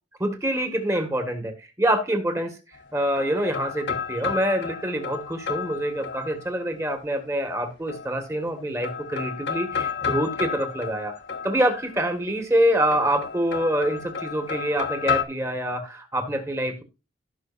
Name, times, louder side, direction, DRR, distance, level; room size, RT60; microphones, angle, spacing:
voice 1, 0.2-1.5 1.8-2.6 2.9-11.1 11.4-16.8, right 1 dB, 15° right, 1.8 m, -25 dB
sound 1, 2.7-6.7 7.9-8.5 8.8-12.0 12.9-15.2, left 7 dB, 70° left, 1.4 m, -31 dB
15.5 x 6.4 x 2.6 m
head